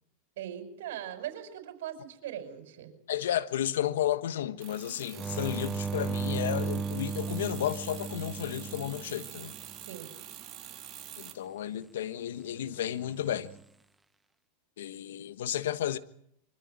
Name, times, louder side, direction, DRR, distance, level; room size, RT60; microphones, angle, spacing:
voice 1, 0.4-2.9 9.8-10.1, right 10 dB, 75° right, 5.3 m, -40 dB
voice 2, 3.1-9.5 11.2-13.5 14.8-16.0, left 11 dB, 85° left, 1.3 m, -32 dB
sound 1, 4.6-11.3, right 12 dB, 40° right, 3.1 m, -46 dB
sound 2, 5.1-9.8 13.0-13.6, right 5 dB, 10° right, 0.8 m, -35 dB
25.0 x 14.0 x 8.7 m
supercardioid pair, 130°, 0 cm